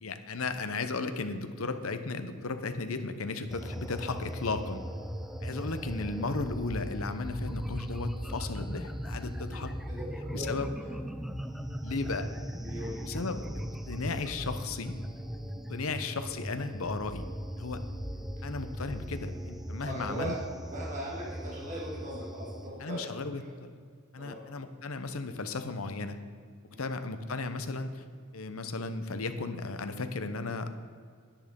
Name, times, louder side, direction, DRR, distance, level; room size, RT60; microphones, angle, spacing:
voice 1, 0.0-4.8 5.4-9.7 10.3-10.7 11.8-12.3 13.0-13.5 13.9-14.9 15.7-17.2 17.5-17.8 18.4-20.4 22.8-23.7 24.1-26.2 26.8-28.0 28.3-30.8, left 3 dB, 80° left, 9 dB, 0.9 m, -35 dB
sound 1, 3.5-22.7, equal, ahead, 0.6 m, -38 dB
voice 2, 9.9-10.5 10.8-11.0 12.6-13.0 18.1-18.2 19.8-23.0 24.2-24.4 26.7-26.9, right 1 dB, 35° right, -6 dB, 2.6 m, -39 dB
10.0 x 10.0 x 5.2 m, 2.1 s
head